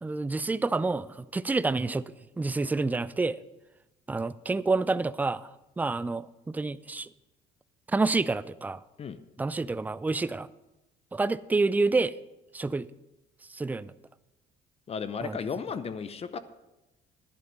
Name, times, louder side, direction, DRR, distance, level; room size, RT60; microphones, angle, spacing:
voice 1, 0.0-3.4 4.1-7.1 7.9-8.8 9.4-10.5 11.1-12.2 12.5-12.9 13.5-13.9 15.2-15.4, right 3 dB, 10° right, 0.3 m, -28 dB
voice 2, 14.9-16.4, left 6 dB, 35° left, 0.7 m, -34 dB
11.5 x 10.5 x 5.2 m
cardioid pair, 110°, 17 cm